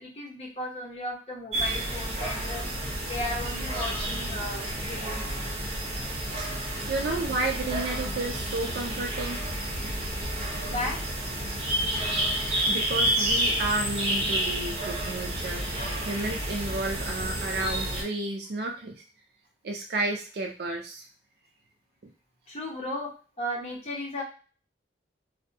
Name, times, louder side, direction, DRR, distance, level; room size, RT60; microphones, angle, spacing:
voice 1, 0.0-2.7 3.1-5.2 10.7-11.0 22.5-24.2, left 1 dB, 40° left, -2 dB, 0.8 m, -35 dB
sound 1, 1.5-18.0, right 1 dB, 40° right, 0.8 m, -30 dB
voice 2, 6.9-9.4 9.8-9.9 11.8-11.9 12.5-19.0 19.6-21.1 22.0-22.1, right 2 dB, 65° right, 2 dB, 0.4 m, -32 dB
2.6 x 2.1 x 2.7 m, 0.38 s
head